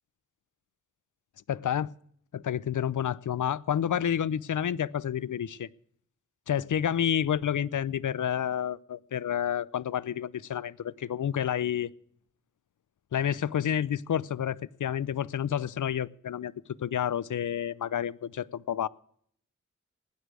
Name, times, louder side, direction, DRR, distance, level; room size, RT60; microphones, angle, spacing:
voice 1, 1.5-1.9 2.3-5.7 6.5-11.9 13.1-16.5 16.8-18.9, left 9 dB, 75° left, 20 dB, 0.6 m, -29 dB
17.5 x 10.5 x 6.3 m, 0.63 s
wide cardioid pair, 110°, 31 cm